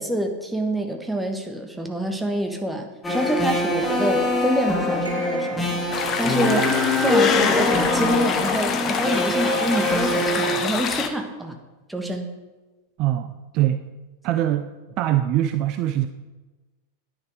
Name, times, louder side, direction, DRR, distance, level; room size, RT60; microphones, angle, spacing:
voice 1, 0.0-5.8 6.2-6.7 7.0-11.6 11.9-12.3, right 1 dB, 5° right, 4 dB, 1.4 m, -26 dB
sound 1, 3.0-10.5, left 2 dB, 10° left, 2.4 m, -23 dB
sound 2, 5.0-6.0 9.5-10.7, equal, 75° right, 3.4 m, -36 dB
sound 3, 5.9-11.1, left 7 dB, 30° left, 1.0 m, -27 dB
voice 2, 13.0-13.9 14.2-16.1, right 13 dB, 40° right, 10 dB, 0.5 m, -23 dB
10.5 x 9.9 x 4.9 m, 1.2 s
figure-of-eight pair, 90°, 0 cm